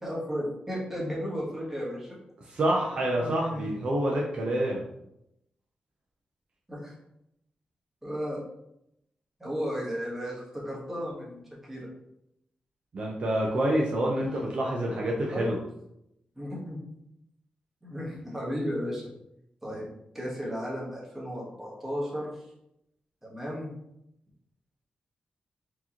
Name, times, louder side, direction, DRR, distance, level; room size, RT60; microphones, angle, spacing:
voice 1, 0.0-2.1 3.2-3.8 6.7-7.0 8.0-8.4 9.4-11.4 11.7-11.9 14.1-14.5 15.3-15.5 16.4-16.8 17.8-19.1 19.6-19.9 20.1-22.5 23.2-23.7, equal, 10° right, -5 dB, 1.2 m, -34 dB
voice 2, 2.5-4.8 12.9-15.6, right 1 dB, 45° right, -2 dB, 0.6 m, -27 dB
4.4 x 2.9 x 2.8 m, 0.81 s
wide cardioid pair, 160°, 3 cm